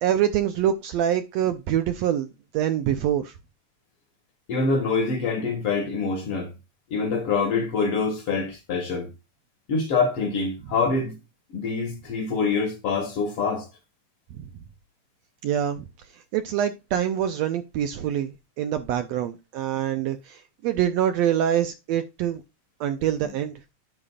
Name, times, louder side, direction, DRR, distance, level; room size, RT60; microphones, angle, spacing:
voice 1, 0.0-2.3 2.5-3.3 15.4-15.8 16.3-22.4 22.8-23.5, right 10 dB, 75° right, 1.6 m, -25 dB
voice 2, 4.5-6.5 6.9-9.1 9.7-11.1 11.5-13.7, left 4 dB, 55° left, 2.0 m, -25 dB
12.5 x 5.0 x 2.4 m
omnidirectional pair, 3.5 m